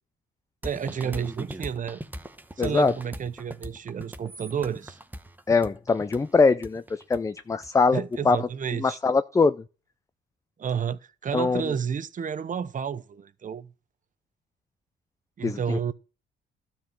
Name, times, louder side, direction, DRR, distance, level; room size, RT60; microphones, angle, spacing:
sound 1, 0.6-8.2, right 1 dB, 10° right, 0.9 m, -40 dB
voice 1, 0.6-2.0 2.6-5.0 7.9-9.0 10.6-13.7 15.4-15.9, right 7 dB, 40° right, 0.8 m, -31 dB
voice 2, 2.6-2.9 5.5-8.4 8.8-9.6 11.3-11.7 15.4-15.8, left 4 dB, 15° left, 0.4 m, -23 dB
12.5 x 4.5 x 7.5 m
cardioid pair, 90°, 20 cm